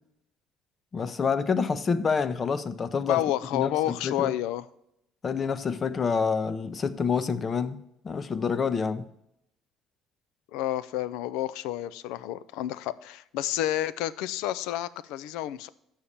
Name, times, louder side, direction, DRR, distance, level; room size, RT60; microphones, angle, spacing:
voice 1, 0.9-3.2 3.5-4.3 5.2-9.1, left 5 dB, 35° left, 0.7 m, -27 dB
voice 2, 3.0-4.7 10.5-15.7, left 13 dB, 80° left, 0.4 m, -30 dB
7.2 x 5.7 x 6.6 m
supercardioid pair, 85°, 0 cm